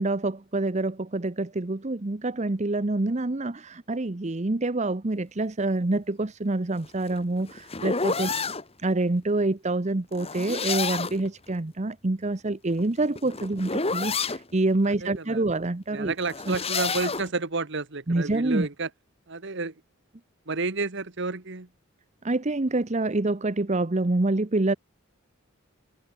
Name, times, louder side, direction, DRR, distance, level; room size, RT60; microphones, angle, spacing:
voice 1, 0.0-8.3 8.8-16.1 16.5-16.6 18.1-18.7 22.2-24.7, right 2 dB, 35° right, 0.8 m, -26 dB
sound 1, 6.8-8.6 10.1-11.3 12.7-14.4 16.2-17.3, left 4 dB, 30° left, 2.0 m, -29 dB
voice 2, 14.9-15.4 15.9-18.9 19.3-19.7 20.5-21.7, right 3 dB, 60° right, 1.5 m, -31 dB
head